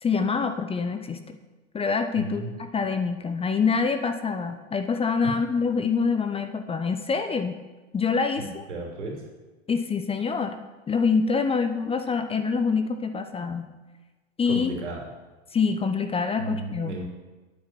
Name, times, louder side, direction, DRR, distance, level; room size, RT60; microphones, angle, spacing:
voice 1, 0.0-1.4 1.7-2.4 2.7-7.6 7.9-8.6 9.7-13.7 14.4-14.7 15.5-16.9, left 5 dB, 15° left, 8 dB, 0.8 m, -25 dB
voice 2, 2.1-2.5 5.2-5.4 8.4-9.2 14.5-15.0 16.4-17.0, right 2 dB, 80° right, 1 dB, 3.0 m, -34 dB
9.0 x 8.8 x 6.0 m, 1.2 s
hypercardioid pair, 100°, 35 cm